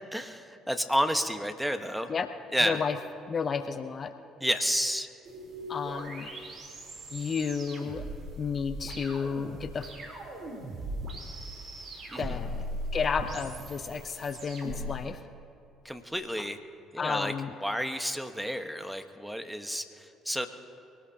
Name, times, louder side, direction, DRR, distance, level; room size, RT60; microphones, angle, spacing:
voice 1, 0.1-2.1 2.5-2.8 4.4-5.1 12.1-12.2 15.8-16.6 16.9-17.3 17.6-20.5, equal, ahead, 7 dB, 1.3 m, -30 dB
voice 2, 2.6-3.0 3.3-4.1 5.7-6.3 7.1-8.0 8.4-9.9 12.2-12.7 12.9-15.2 17.0-17.5, left 6 dB, 45° left, 9 dB, 0.7 m, -32 dB
sound 1, 5.3-15.0, equal, 50° right, 3.9 m, -39 dB
24.0 x 19.0 x 2.9 m, 2.6 s
hypercardioid pair, 60°, 0 cm